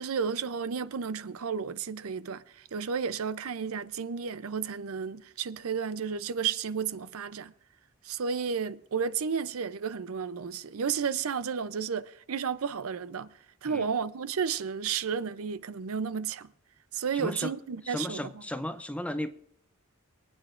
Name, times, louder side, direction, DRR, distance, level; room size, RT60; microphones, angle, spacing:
voice 1, 0.0-7.5 8.0-13.3 13.6-16.5 16.9-18.4, right 6 dB, 75° right, 0.6 m, -32 dB
voice 2, 17.1-17.5 17.9-19.3, left 1 dB, 5° left, 0.5 m, -35 dB
24.0 x 9.4 x 2.5 m
head